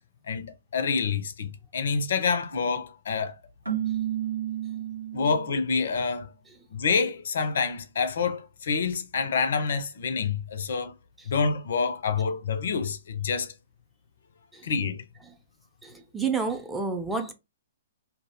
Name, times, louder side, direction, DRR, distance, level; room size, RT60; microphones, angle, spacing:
voice 1, 0.3-3.3 5.1-6.3 6.7-10.9 11.3-13.5 14.6-15.0, left 5 dB, 60° left, 0.4 m, -27 dB
Keyboard (musical), 3.7-5.6, right 11 dB, 85° right, 0.7 m, -31 dB
voice 2, 15.8-17.3, right 4 dB, 5° right, 0.4 m, -29 dB
2.2 x 2.0 x 2.7 m
figure-of-eight pair, 120°, 0 cm